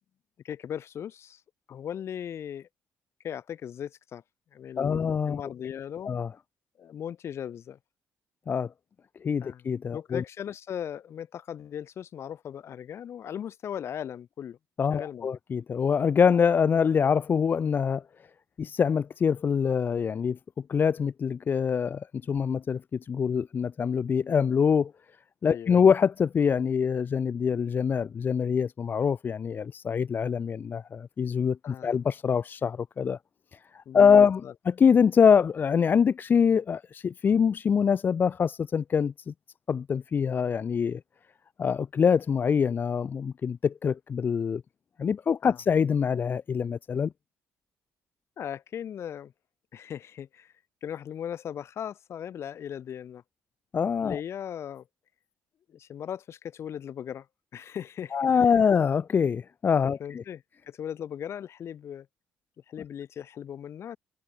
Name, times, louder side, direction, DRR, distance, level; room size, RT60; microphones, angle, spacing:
voice 1, 0.4-1.4 1.7-2.7 3.2-4.2 4.5-6.1 6.8-7.8 9.4-9.6 9.9-14.6 14.9-15.3 25.4-25.8 31.6-32.0 33.8-34.5 45.4-45.6 48.4-49.3 49.7-50.5 50.8-53.2 54.0-54.9 55.7-57.3 57.5-58.5 60.0-62.1 62.7-64.0, left 9 dB, 55° left, 3.4 m, -38 dB
voice 2, 4.8-5.4 6.1-6.3 8.5-8.7 9.2-10.2 14.8-18.0 18.6-20.4 20.7-24.9 25.4-33.2 33.5-34.4 34.7-39.3 39.7-41.0 41.6-44.6 45.0-47.1 53.7-54.2 58.1-60.2, left 6 dB, 40° left, 0.7 m, -24 dB
cardioid pair, 105°, 5 cm